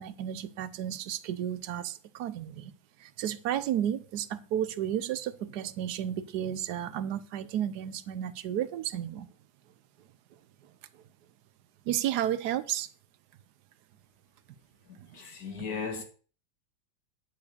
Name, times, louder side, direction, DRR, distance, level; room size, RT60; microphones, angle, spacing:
voice 1, 0.0-2.7 3.0-9.3 10.6-11.0 11.8-12.9 15.0-15.2, right 10 dB, 75° right, 1.2 m, -33 dB
voice 2, 14.9-16.0, left 5 dB, 65° left, 2.1 m, -37 dB
9.7 x 4.6 x 6.7 m
omnidirectional pair, 1.8 m